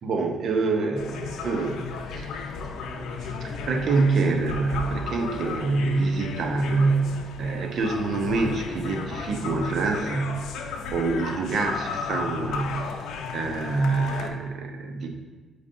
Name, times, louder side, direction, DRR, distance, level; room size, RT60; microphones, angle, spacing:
voice 1, 0.0-2.4 2.9-10.4 10.9-12.9 13.3-15.1, right 3 dB, 60° right, 3 dB, 0.8 m, -26 dB
sound 1, 1.0-14.3, left 5 dB, 80° left, 0.5 m, -34 dB
8.4 x 5.1 x 2.6 m, 1.3 s
cardioid pair, 90°, 0 cm